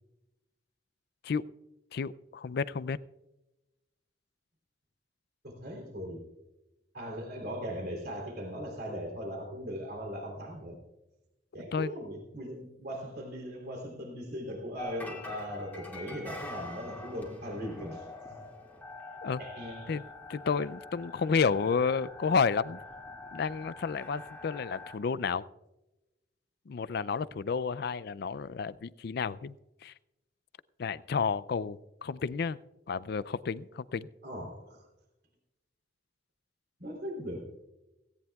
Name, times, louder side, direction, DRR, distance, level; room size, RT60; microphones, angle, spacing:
voice 1, 1.9-3.0 11.7-11.9 19.2-19.4 19.9-20.0 20.3-22.8 23.3-25.4 26.7-29.5 29.8-29.9 30.8-32.6 32.9-34.1, left 5 dB, 60° left, 18 dB, 0.4 m, -31 dB
voice 2, 5.4-6.3 6.9-10.8 11.5-18.4 19.4-19.9 34.2-34.8 36.8-37.5, equal, 60° right, 0 dB, 3.2 m, -39 dB
sound 1, 14.8-25.0, left 2 dB, 10° left, 2.2 m, -45 dB
17.0 x 17.0 x 2.3 m, 0.99 s
head